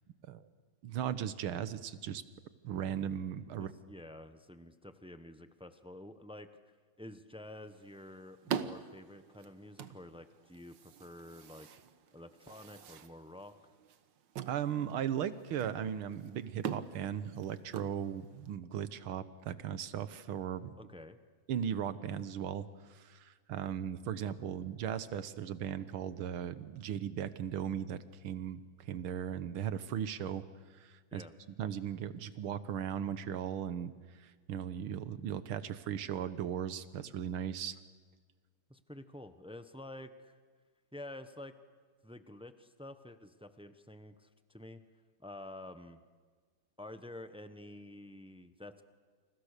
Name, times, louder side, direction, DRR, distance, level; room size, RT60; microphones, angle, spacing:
voice 1, 0.8-2.2 2.6-3.7 14.5-20.7 21.5-28.0 28.2-30.4 30.7-31.2 31.6-37.8, right 9 dB, 85° right, 13 dB, 1.9 m, -37 dB
voice 2, 3.6-6.5 7.0-11.7 12.1-13.5 20.8-21.2 31.1-31.3 38.7-40.4 40.9-41.5 42.0-44.8 45.2-46.0 46.8-48.8, left 1 dB, 5° right, 10 dB, 0.6 m, -49 dB
sound 1, 7.5-18.5, right 8 dB, 65° right, 1.7 m, -45 dB
29.5 x 28.0 x 6.7 m, 1.5 s
omnidirectional pair, 2.2 m